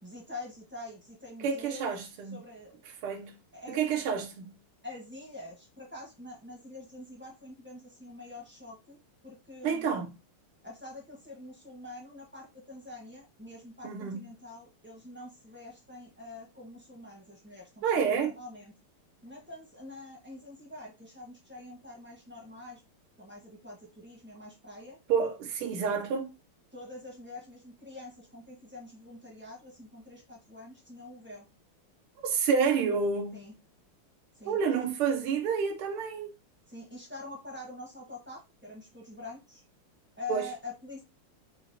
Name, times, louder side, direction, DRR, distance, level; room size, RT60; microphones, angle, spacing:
voice 1, 0.0-2.7 3.5-4.1 4.8-9.9 10.6-17.8 18.2-18.7 19.2-22.8 23.2-25.0 26.7-31.5 33.3-33.5 34.3-34.6 36.7-39.6 40.2-41.0, left 2 dB, 5° right, 0.9 m, -45 dB
voice 2, 1.4-2.4 3.0-3.3 3.7-4.6 9.6-10.1 13.8-14.2 17.8-18.3 25.1-26.3 32.2-33.4 34.4-36.3 40.3-40.5, right 6 dB, 80° right, 1.8 m, -29 dB
5.7 x 2.4 x 2.8 m
omnidirectional pair, 2.4 m